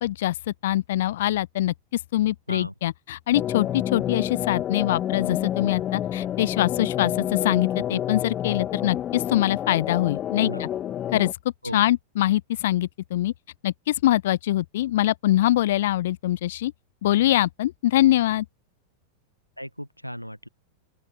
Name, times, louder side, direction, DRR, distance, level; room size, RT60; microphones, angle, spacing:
voice 1, 0.0-10.7 11.1-11.3 11.7-13.3 13.6-16.7 17.0-18.5, left 14 dB, 55° left, 0.4 m, -23 dB
sound 1, 3.3-11.3, left 11 dB, 30° left, 2.2 m, -29 dB
voice 2, 19.6-20.5, equal, 90° left, 1.1 m, -35 dB
open air
figure-of-eight pair, 90°, 0 cm